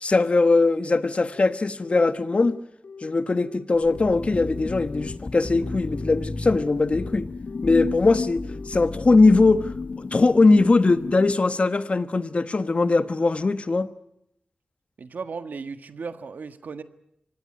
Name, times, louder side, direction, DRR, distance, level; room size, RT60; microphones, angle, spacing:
voice 1, 0.0-2.6 3.0-7.3 7.6-9.7 10.0-13.9, left 3 dB, 45° left, 1.2 m, -20 dB
Telephone, 1.3-8.8, left 5 dB, 90° left, 2.7 m, -43 dB
sound 1, 3.7-11.3, left 4 dB, 65° left, 1.2 m, -35 dB
sound 2, 4.0-9.9, left 2 dB, 25° left, 1.0 m, -35 dB
voice 2, 15.0-16.8, right 5 dB, 80° right, 1.6 m, -35 dB
25.0 x 18.5 x 9.9 m
wide cardioid pair, 90°, 3 cm